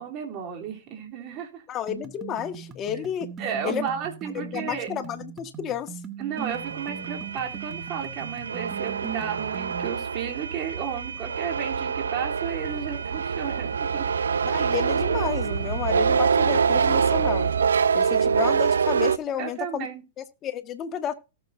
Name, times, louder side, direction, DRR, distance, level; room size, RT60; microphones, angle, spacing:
voice 1, 0.0-1.6 3.4-4.9 6.2-14.1 19.4-20.0, right 8 dB, 40° right, 3.4 m, -33 dB
voice 2, 1.7-3.3 3.6-3.8 4.3-6.0 14.4-17.5 17.9-19.9 20.2-21.1, left 10 dB, 30° left, 1.6 m, -31 dB
sound 1, 1.9-9.9, right 8 dB, 25° right, 1.5 m, -39 dB
sound 2, 6.4-19.2, right 6 dB, 85° right, 0.5 m, -25 dB
18.5 x 7.2 x 2.7 m
hypercardioid pair, 115°, 0 cm